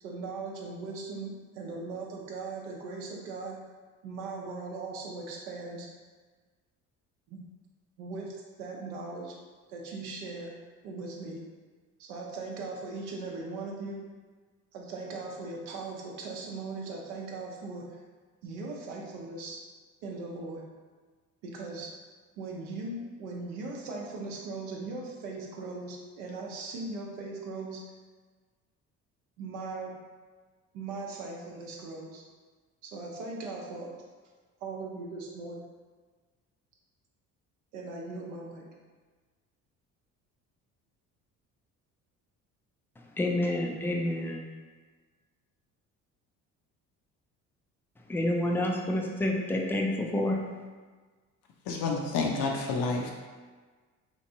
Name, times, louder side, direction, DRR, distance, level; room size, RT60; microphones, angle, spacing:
voice 1, 0.0-3.6 4.0-5.9 7.3-7.4 8.0-9.3 9.7-10.5 10.8-11.4 12.0-14.0 14.7-17.8 18.4-19.6 20.0-20.6 21.4-21.9 22.4-27.8 29.4-29.9 30.7-32.2 32.8-33.9 34.6-35.6 37.7-38.7, right 3 dB, 75° right, -1 dB, 0.7 m, -39 dB
voice 2, 43.2-44.4 48.1-50.4, left 1 dB, 5° left, 0 dB, 0.3 m, -28 dB
voice 3, 51.7-53.1, left 3 dB, 60° left, 0 dB, 0.6 m, -29 dB
3.0 x 2.5 x 2.7 m, 1.4 s
hypercardioid pair, 55°, 43 cm